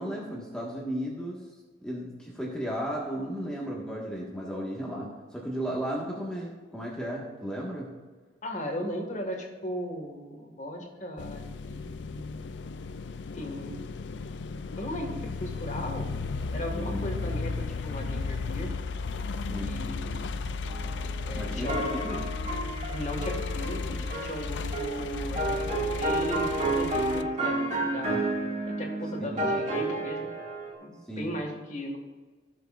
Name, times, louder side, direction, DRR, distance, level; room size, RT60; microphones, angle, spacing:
voice 1, 0.0-1.4 1.8-7.9 16.7-17.1 19.5-19.7 21.3-22.3 29.2-29.5 31.1-31.3, equal, 5° left, -4 dB, 1.6 m, -34 dB
voice 2, 8.4-12.5 13.3-13.7 14.1-14.2 14.7-16.1 16.5-18.8 19.5-20.3 21.2-22.1 22.9-28.2 28.6-30.3 30.8-32.0, equal, 40° left, 2 dB, 1.8 m, -37 dB
sound 1, 11.2-27.2, left 4 dB, 70° left, 0.4 m, -35 dB
sound 2, 20.7-30.7, right 2 dB, 40° right, 2.1 m, -31 dB
18.0 x 6.6 x 2.5 m, 1.4 s
head